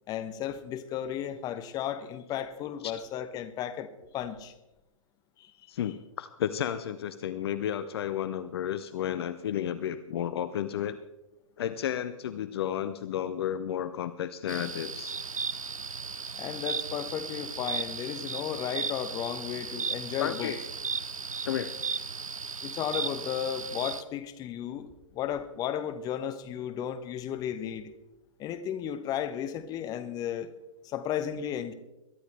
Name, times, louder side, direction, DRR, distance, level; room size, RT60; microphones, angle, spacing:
voice 1, 0.1-4.5 5.4-5.5 16.3-20.5 22.6-27.9 28.4-30.5 30.8-31.7, left 9 dB, 20° left, 10 dB, 1.0 m, -34 dB
voice 2, 5.7-11.0 11.6-15.2 20.2-20.6 21.4-21.7, left 10 dB, 50° left, 12 dB, 0.7 m, -32 dB
sound 1, 14.5-24.0, right 5 dB, 80° right, 0.7 m, -36 dB
22.0 x 12.0 x 3.3 m, 0.98 s
figure-of-eight pair, 115°, 17 cm